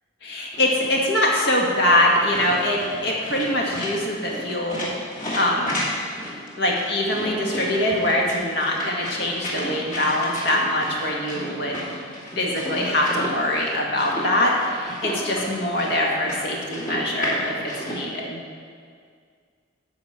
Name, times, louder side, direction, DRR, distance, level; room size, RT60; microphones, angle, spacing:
voice 1, 0.2-4.9 5.3-5.8 6.6-11.8 12.4-18.4, left 1 dB, 65° left, -2 dB, 1.9 m, -23 dB
sound 1, 0.5-18.0, equal, 45° left, 2.4 m, -33 dB
12.5 x 5.2 x 7.3 m, 2.1 s
head